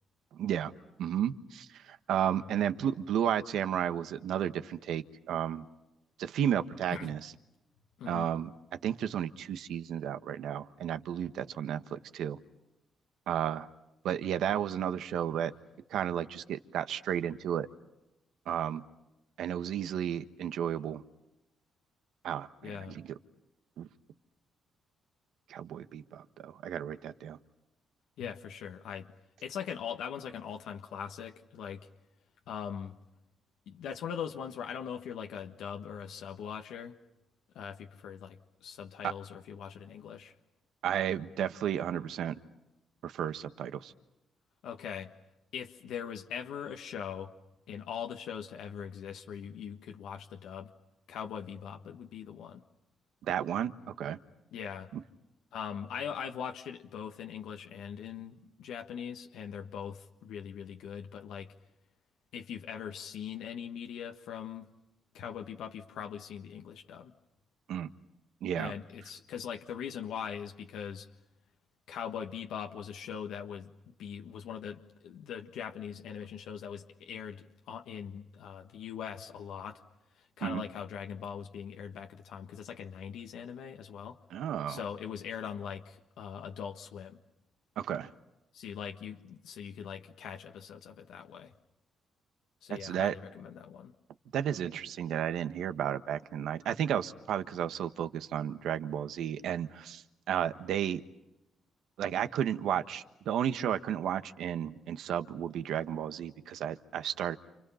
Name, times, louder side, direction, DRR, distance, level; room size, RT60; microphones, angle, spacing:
voice 1, 0.3-0.7 1.0-5.6 6.2-7.3 8.1-8.5 8.8-12.4 13.3-13.7 14.0-15.5 15.9-17.7 18.5-18.8 19.4-21.0 22.2-23.1 23.8-23.9 25.5-27.4 39.0-39.1 40.8-42.4 43.0-43.9 53.2-53.7 54.0-54.2 67.7-67.9 68.4-68.7 80.4-80.6 84.3-84.8 87.8-88.1 92.8-93.1 94.3-101.0 102.0-107.4, right 9 dB, 80° right, 10 dB, 1.3 m, -33 dB
voice 2, 8.0-8.3 22.6-23.0 28.2-29.1 29.4-31.9 32.5-33.0 33.7-37.0 37.5-40.3 44.6-45.1 45.5-47.3 47.7-50.7 51.1-52.6 54.5-54.9 55.5-61.5 62.3-64.7 65.1-67.1 68.6-71.1 71.9-79.8 80.1-84.2 84.7-87.2 88.5-91.5 92.6-93.9, left 8 dB, 85° left, 3 dB, 1.5 m, -41 dB
29.5 x 28.5 x 5.7 m, 0.94 s
cardioid pair, 120°, 0 cm